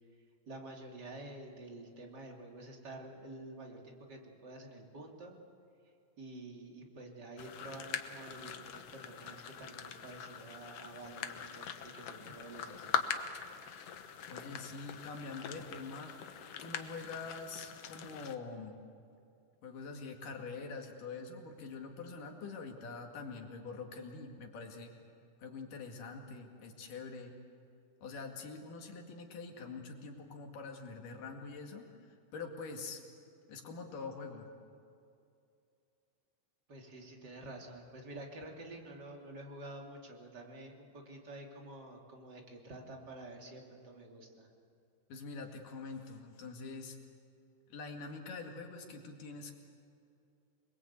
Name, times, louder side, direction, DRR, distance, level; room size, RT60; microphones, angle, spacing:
voice 1, 0.5-5.4 6.2-13.0 36.7-44.5, right 2 dB, 35° right, 0 dB, 3.1 m, -49 dB
sound 1, 7.4-18.4, left 7 dB, 60° left, 1.9 m, -42 dB
voice 2, 14.3-16.1 16.6-18.8 19.6-24.9 25.4-27.4 28.0-33.0 33.5-34.5 45.1-47.0 47.7-49.5, left 4 dB, 85° left, 2 dB, 3.8 m, -45 dB
28.5 x 21.5 x 8.3 m, 2.5 s
omnidirectional pair, 3.7 m